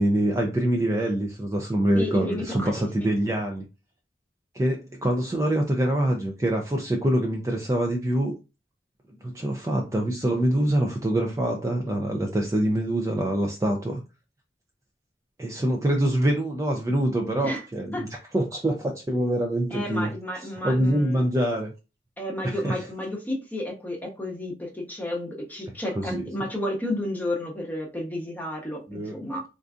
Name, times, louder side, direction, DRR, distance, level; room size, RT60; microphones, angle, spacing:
voice 1, 0.0-3.6 4.5-8.3 9.1-14.0 15.4-18.1 18.3-20.1 20.6-21.7 22.4-22.8 26.0-26.2 28.9-29.2, right 1 dB, 20° right, 1 dB, 0.4 m, -25 dB
voice 2, 1.9-2.8 17.4-17.6 17.9-18.1 19.7-21.2 22.2-29.4, left 1 dB, 10° left, 0 dB, 0.8 m, -32 dB
3.7 x 2.5 x 2.3 m, 0.29 s
head